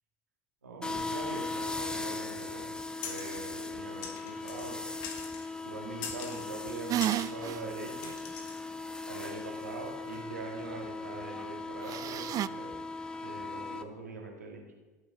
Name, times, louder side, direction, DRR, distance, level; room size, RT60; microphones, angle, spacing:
voice 1, 0.6-2.8 3.0-4.9 5.6-8.2 9.1-12.8 13.2-14.7, right 3 dB, 85° right, 0 dB, 2.0 m, -43 dB
sound 1, 0.8-13.8, left 3 dB, 10° left, 1.0 m, -39 dB
sound 2, 3.0-3.4 4.0-4.7 5.0-5.5 6.0-6.4 7.0-7.3 8.0-8.6, left 7 dB, 65° left, 1.5 m, -42 dB
sound 3, 6.9-7.6 8.1-8.2 11.9-12.5, right 13 dB, 45° right, 0.3 m, -31 dB
18.0 x 9.2 x 3.7 m, 1.2 s
figure-of-eight pair, 65°, 9 cm